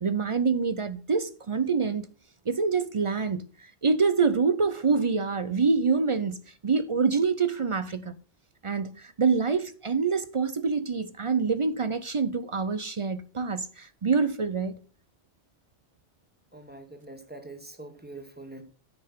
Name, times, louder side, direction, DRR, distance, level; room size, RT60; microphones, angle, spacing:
voice 1, 0.0-2.1 2.5-8.2 8.6-14.8, right 5 dB, 45° right, 0.4 m, -26 dB
voice 2, 16.5-18.6, right 2 dB, 10° right, 1.4 m, -44 dB
9.6 x 5.7 x 5.6 m
omnidirectional pair, 1.2 m